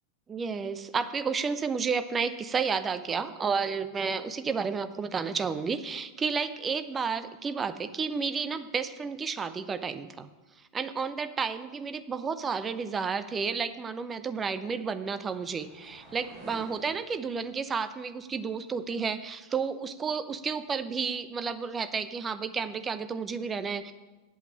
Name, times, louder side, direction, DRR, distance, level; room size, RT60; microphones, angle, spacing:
voice 1, 0.3-10.3 10.7-23.9, right 5 dB, 20° right, 11 dB, 0.7 m, -31 dB
sound 1, 13.6-18.8, right 1 dB, 35° right, 4.2 m, -54 dB
8.1 x 8.1 x 8.6 m, 1.2 s
figure-of-eight pair, 85°, 0 cm